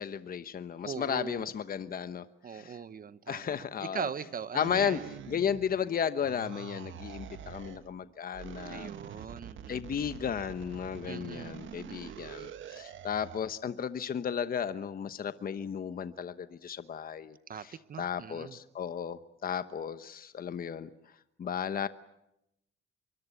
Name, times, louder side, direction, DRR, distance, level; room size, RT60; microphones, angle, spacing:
voice 1, 0.0-2.8 3.3-4.1 4.5-5.0 5.3-8.9 9.7-17.4 17.6-17.7 18.0-20.9 21.4-21.9, left 8 dB, 45° left, 12 dB, 1.1 m, -34 dB
voice 2, 0.8-1.5 2.4-5.0 8.7-10.1 11.1-12.2 17.5-18.6, right 7 dB, 45° right, 14 dB, 1.1 m, -41 dB
sound 1, 4.6-5.9 6.2-7.9 8.3-13.5, right 9 dB, 75° right, 1.5 m, -45 dB
25.0 x 24.0 x 8.3 m, 0.83 s
cardioid pair, 90°, 20 cm